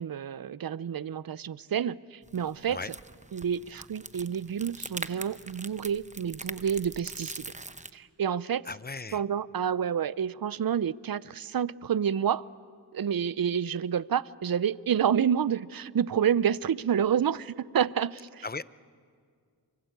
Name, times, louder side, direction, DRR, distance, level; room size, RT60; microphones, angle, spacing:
voice 1, 0.0-2.9 3.3-7.5 7.9-8.6 9.1-12.4 12.9-18.5, right 8 dB, 55° right, 19 dB, 0.6 m, -29 dB
sound 1, 2.2-7.9, right 2 dB, 15° right, 0.9 m, -42 dB
voice 2, 8.7-9.2 18.4-18.6, left 3 dB, 25° left, 16 dB, 0.7 m, -36 dB
28.0 x 24.5 x 8.2 m, 2.1 s
cardioid pair, 45°, 42 cm